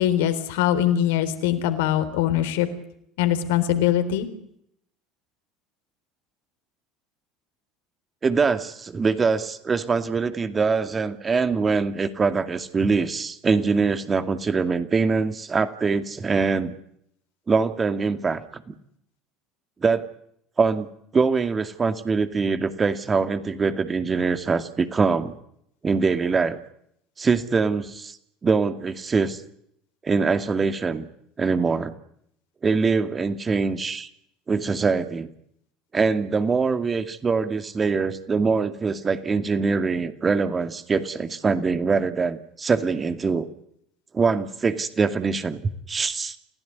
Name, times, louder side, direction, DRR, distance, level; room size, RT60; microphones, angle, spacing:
voice 1, 0.0-2.7 3.2-4.3, left 11 dB, 70° left, 10 dB, 3.7 m, -22 dB
voice 2, 8.2-16.8 17.5-18.7 19.8-20.1 20.6-20.9 21.1-25.3 25.8-26.6 27.2-28.2 28.4-29.4 30.0-31.1 31.4-31.9 32.6-34.1 34.5-35.3 35.9-43.5 44.1-46.4, right 4 dB, 25° right, 9 dB, 2.3 m, -23 dB
29.5 x 17.0 x 9.8 m, 0.74 s
hypercardioid pair, 70°, 0 cm